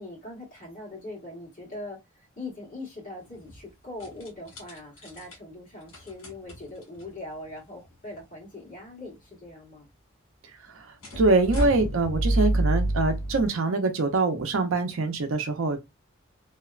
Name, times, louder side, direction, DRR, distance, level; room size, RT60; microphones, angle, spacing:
voice 1, 0.0-9.9, left 2 dB, 40° left, 1.4 m, -41 dB
sound 1, 3.2-3.6 4.0-5.3 5.9-7.1 7.9-8.2 11.0-13.5, right 1 dB, 85° left, 1.5 m, -28 dB
voice 2, 11.2-15.8, right 3 dB, 80° right, 0.5 m, -24 dB
2.8 x 2.1 x 2.3 m
head